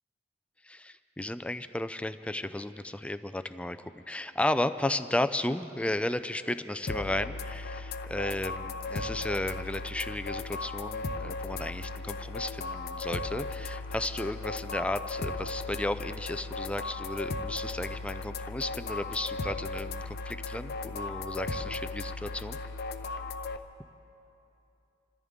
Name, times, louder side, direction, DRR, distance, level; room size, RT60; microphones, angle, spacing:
voice 1, 0.6-22.6, left 1 dB, 5° left, 12 dB, 0.3 m, -34 dB
sound 1, 6.9-23.6, left 3 dB, 55° left, 0.6 m, -36 dB
27.0 x 14.5 x 3.6 m, 2.9 s
head